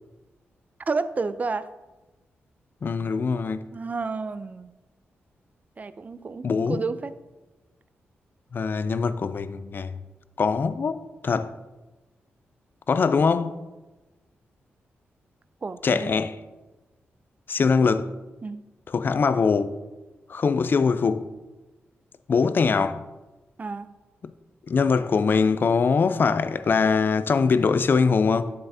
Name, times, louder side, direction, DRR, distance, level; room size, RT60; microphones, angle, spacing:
voice 1, 0.9-1.7 3.7-4.7 5.8-7.1 15.6-16.2 18.4-18.6 23.6-23.9, right 4 dB, 35° right, 0.4 m, -30 dB
voice 2, 2.8-3.7 6.4-6.8 8.5-9.9 10.4-11.5 12.9-13.6 15.8-16.3 17.5-18.1 18.9-19.8 20.3-21.3 22.3-23.0 24.7-28.5, left 5 dB, 50° left, 0.4 m, -22 dB
9.3 x 7.1 x 2.7 m
cardioid pair, 70°, 4 cm